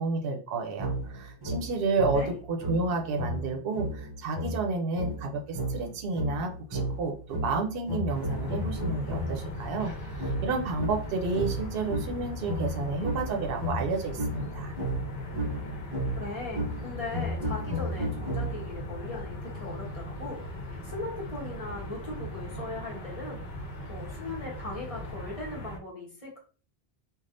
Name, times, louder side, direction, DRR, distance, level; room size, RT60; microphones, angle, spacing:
voice 1, 0.0-14.7, right 3 dB, 65° right, 3 dB, 0.8 m, -31 dB
sound 1, 0.8-9.5 10.2-18.8, equal, 25° right, 0.7 m, -34 dB
sound 2, 8.1-25.8, equal, 75° left, 0.9 m, -39 dB
voice 2, 16.2-26.4, left 2 dB, 35° left, -4 dB, 1.1 m, -39 dB
3.3 x 2.3 x 2.5 m, 0.38 s
omnidirectional pair, 1.1 m